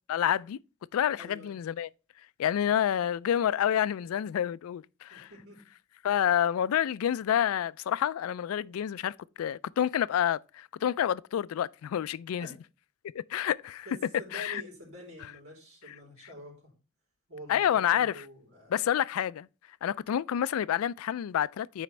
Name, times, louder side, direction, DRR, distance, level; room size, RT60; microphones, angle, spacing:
voice 1, 0.1-0.6 0.9-1.9 2.4-5.3 6.0-12.5 13.1-13.9 14.3-14.6 17.5-18.1 18.7-19.5 19.8-21.8, left 10 dB, 80° left, 0.3 m, -28 dB
voice 2, 1.1-1.6 5.1-5.6 12.4-12.5 13.9-16.7 17.3-18.9, left 1 dB, 85° right, 4.0 m, -47 dB
9.1 x 5.0 x 3.2 m
head